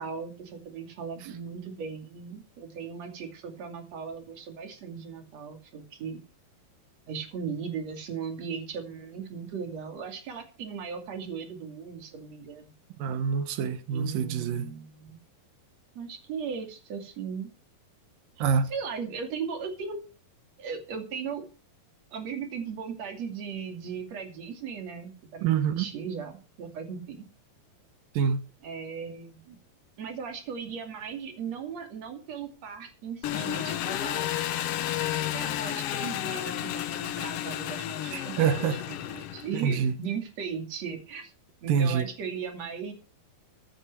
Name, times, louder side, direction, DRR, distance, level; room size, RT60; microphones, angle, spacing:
voice 1, 0.0-6.2 7.1-12.8 13.9-15.2 16.0-17.5 18.7-20.0 20.6-21.5 22.1-27.3 28.6-29.6 30.0-34.3 35.3-41.3 41.6-42.9, right 6 dB, 55° right, 3.5 m, -37 dB
voice 2, 13.0-14.7 18.4-18.7 25.4-25.9 28.1-28.4 38.1-38.8 39.5-40.0 41.7-42.1, right 7 dB, 85° right, 3.0 m, -26 dB
Engine, 33.2-39.7, left 12 dB, 90° left, 1.3 m, -32 dB
15.0 x 10.5 x 4.6 m
omnidirectional pair, 3.9 m